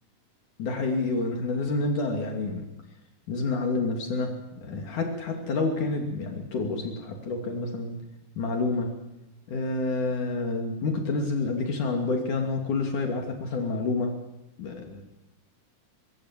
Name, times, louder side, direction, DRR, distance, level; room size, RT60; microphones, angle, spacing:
voice 1, 0.6-2.6 3.3-4.4 4.6-8.0 8.4-8.9 9.5-14.1 14.6-15.0, left 3 dB, 70° left, 3 dB, 4.2 m, -28 dB
25.0 x 24.5 x 7.6 m, 0.91 s
omnidirectional pair, 3.7 m